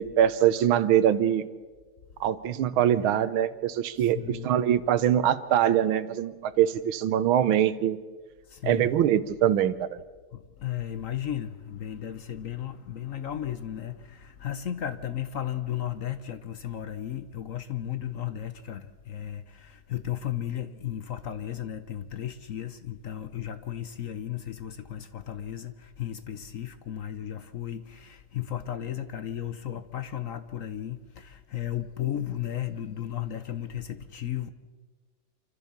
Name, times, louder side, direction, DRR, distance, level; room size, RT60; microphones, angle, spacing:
voice 1, 0.0-1.5 2.2-8.0 8.6-9.9, right 10 dB, 75° right, 1.6 m, -23 dB
voice 2, 4.0-4.5 8.4-8.9 10.3-34.5, left 11 dB, 65° left, 0.8 m, -35 dB
27.5 x 14.0 x 7.3 m
omnidirectional pair, 2.3 m